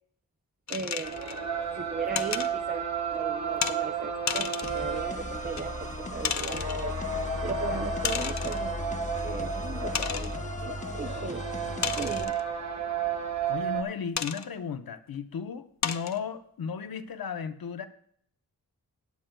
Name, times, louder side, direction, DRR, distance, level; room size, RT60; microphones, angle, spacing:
sound 1, 0.7-1.4 2.1-2.5 3.6-3.8 4.3-4.8 5.6-5.7 6.2-6.8 8.0-8.7 9.2-9.3 9.9-10.4 11.8-12.4 14.2-14.5 15.1-15.2 15.8-16.2, left 7 dB, 50° left, 0.5 m, -32 dB
voice 1, 0.7-1.1 1.7-7.0 7.4-11.4 12.0-12.4, right 4 dB, 25° right, 6 dB, 0.4 m, -37 dB
sound 2, 1.0-13.8, right 5 dB, 50° right, 1.2 m, -33 dB
sound 3, 4.6-12.2, left 3 dB, 20° left, 0.7 m, -37 dB
voice 2, 13.5-17.9, left 6 dB, 80° left, 9 dB, 0.8 m, -35 dB
16.5 x 8.8 x 2.2 m, 0.66 s
wide cardioid pair, 120°, 36 cm